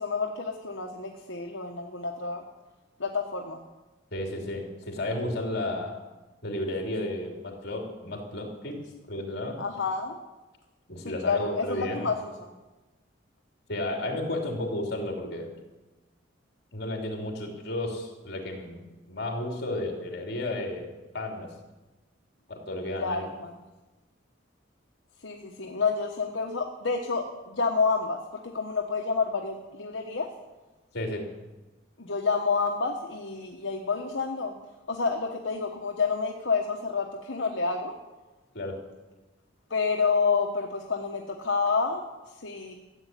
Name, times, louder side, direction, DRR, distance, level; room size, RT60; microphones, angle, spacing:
voice 1, 0.0-2.4 3.0-3.6 9.6-10.2 11.0-12.5 23.0-23.5 25.2-30.3 32.0-34.5 34.9-37.9 39.7-42.7, left 4 dB, 75° left, 2 dB, 1.2 m, -29 dB
voice 2, 4.1-6.0 6.4-8.8 9.1-9.6 10.9-12.1 13.7-15.5 16.7-18.8 19.1-20.9 21.1-21.5 22.5-23.2 30.9-31.3 38.5-38.8, left 1 dB, 55° left, 2 dB, 3.2 m, -32 dB
14.5 x 8.3 x 9.1 m, 1.1 s
head